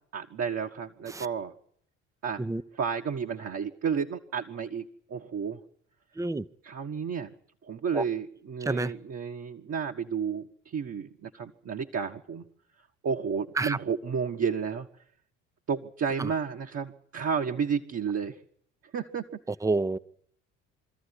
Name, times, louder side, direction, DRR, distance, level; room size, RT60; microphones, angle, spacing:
voice 1, 0.1-1.5 2.2-2.4 2.7-5.6 6.6-7.3 7.6-12.4 13.0-14.9 15.7-18.4 18.9-19.3, right 6 dB, 40° right, 1.5 m, -32 dB
voice 2, 19.6-20.0, right 3 dB, 10° right, 0.8 m, -28 dB
24.5 x 14.0 x 9.9 m
hypercardioid pair, 60°, 37 cm